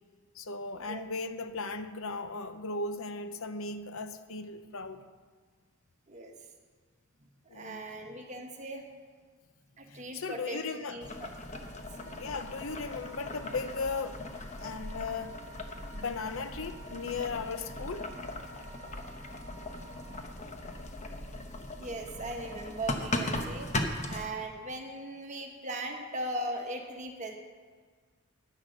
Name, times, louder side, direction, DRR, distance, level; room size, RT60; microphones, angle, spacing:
voice 1, 0.3-5.0 7.5-7.8 9.9-11.0 12.2-14.2 14.6-15.3 15.9-18.1, left 4 dB, 65° left, 10 dB, 0.7 m, -37 dB
voice 2, 7.5-8.9 9.8-10.6 10.9-11.6 21.8-23.7 24.1-27.4, right 1 dB, 35° right, 2 dB, 1.4 m, -39 dB
Boiling, 11.0-24.3, left 2 dB, 30° left, 0.9 m, -38 dB
Wind instrument woodwind instrument, 11.9-20.3, right 4 dB, 15° right, 1.7 m, -54 dB
10.5 x 10.5 x 6.6 m, 1.6 s
head